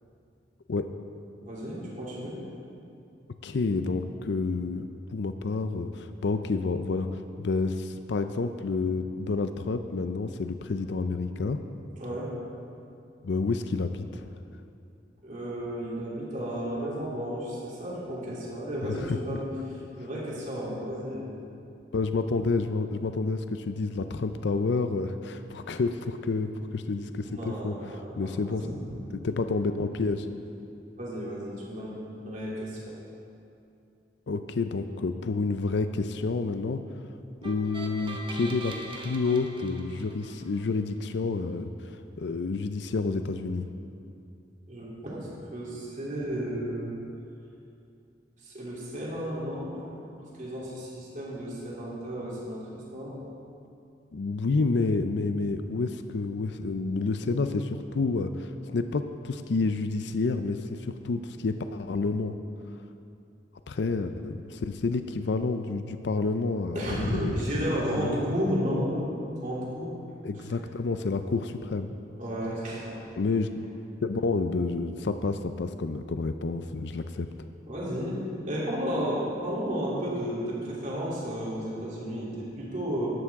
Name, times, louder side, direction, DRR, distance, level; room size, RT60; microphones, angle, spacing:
voice 1, 1.4-2.4 12.0-12.3 15.2-19.5 20.0-21.3 27.2-28.7 31.0-32.9 44.7-47.0 48.4-49.9 50.2-53.2 66.7-69.0 69.3-69.9 72.2-73.0 77.7-78.2 78.4-83.1, equal, 45° right, -6 dB, 3.1 m, -33 dB
voice 2, 3.4-11.6 13.2-14.3 18.8-19.4 21.9-28.6 29.2-30.3 34.3-36.8 37.4-43.7 54.1-62.4 63.7-67.3 67.9-68.3 70.2-71.9 73.2-73.6 74.0-77.3, left 3 dB, 70° left, 9 dB, 0.5 m, -29 dB
sound 1, 37.4-40.7, right 2 dB, 30° right, 1.0 m, -42 dB
13.0 x 11.0 x 3.6 m, 2.6 s
head